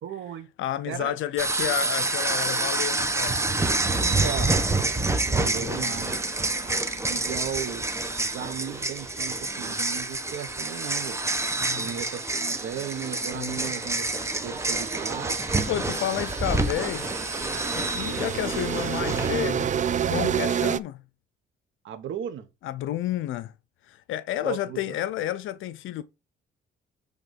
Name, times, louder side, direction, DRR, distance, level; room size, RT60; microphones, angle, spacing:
voice 1, 0.0-0.5 0.8-1.1 4.0-4.6 5.3-6.1 7.1-11.2 11.7-15.5 21.8-22.5 24.4-24.8, right 9 dB, 75° right, 1.3 m, -36 dB
voice 2, 0.6-3.4 5.3-5.9 11.5-11.9 13.3-13.7 15.7-17.1 17.8-19.7 20.1-21.0 22.6-23.5 23.8-26.0, left 12 dB, 80° left, 0.6 m, -31 dB
sound 1, 1.4-19.4, right 2 dB, 15° right, 1.1 m, -28 dB
sound 2, 4.8-9.1 10.6-20.8, right 8 dB, 40° right, 0.4 m, -33 dB
8.2 x 3.5 x 5.2 m
cardioid pair, 90°, 20 cm